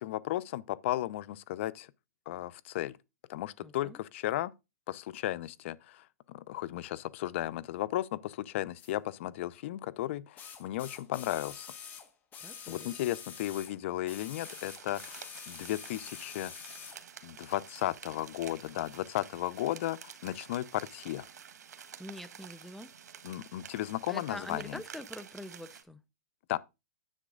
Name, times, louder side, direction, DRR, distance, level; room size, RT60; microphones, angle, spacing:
voice 1, 0.0-1.9 2.3-3.0 3.3-4.5 4.9-11.7 12.7-16.5 17.2-21.3 23.2-24.8 26.5-26.6, left 14 dB, 50° left, 0.6 m, -35 dB
voice 2, 3.6-4.0 12.4-13.0 22.0-22.9 24.1-26.0, left 1 dB, ahead, 0.6 m, -44 dB
sound 1, 8.8-8.9 10.4-13.8 14.1-17.0 18.0-18.1, left 7 dB, 20° left, 1.6 m, -46 dB
sound 2, 14.4-25.8, right 8 dB, 85° right, 1.4 m, -50 dB
10.0 x 7.4 x 3.9 m
hypercardioid pair, 155°, 9 cm